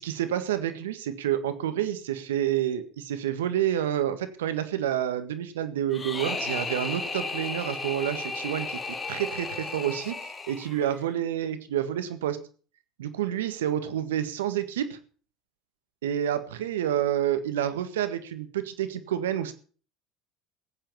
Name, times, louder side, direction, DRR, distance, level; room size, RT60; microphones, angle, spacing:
voice 1, 0.0-12.4 13.0-15.0 16.0-19.5, right 11 dB, 85° right, 11 dB, 1.7 m, -29 dB
sound 1, 5.9-11.0, left 3 dB, 25° left, 2.4 m, -34 dB
15.5 x 9.1 x 7.0 m, 0.41 s
hypercardioid pair, 75°, 0 cm